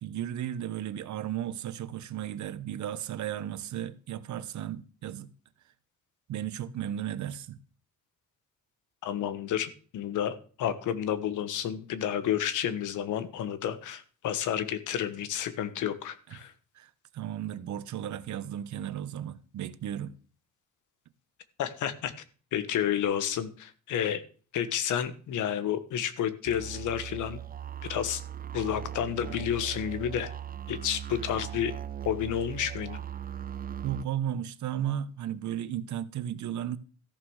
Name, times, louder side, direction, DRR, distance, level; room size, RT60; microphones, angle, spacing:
voice 1, 0.0-5.3 6.3-7.6 16.8-20.1 33.8-36.8, right 10 dB, 70° right, 1.1 m, -34 dB
voice 2, 9.0-16.5 21.6-22.1 22.5-24.2 24.5-27.4 27.9-28.2 28.5-30.3 30.7-31.7 32.0-33.0, left 9 dB, 80° left, 1.4 m, -30 dB
sound 1, 26.5-34.1, right 10 dB, 30° right, 0.5 m, -39 dB
14.0 x 6.2 x 6.4 m
cardioid pair, 90°, 30 cm